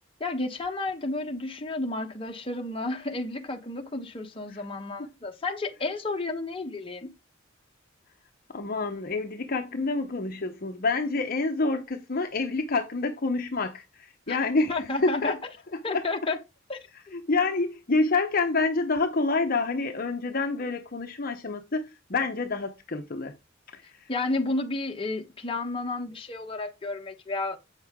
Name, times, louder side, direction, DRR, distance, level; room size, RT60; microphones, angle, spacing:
voice 1, 0.2-7.1 14.3-15.4 15.8-16.4 16.7-16.8 24.1-27.6, left 2 dB, 30° left, 1.2 m, -31 dB
voice 2, 8.5-14.7 15.0-15.3 15.9-16.0 17.1-23.3 23.7-24.1, left 3 dB, 50° left, 0.9 m, -28 dB
8.2 x 6.2 x 3.7 m
head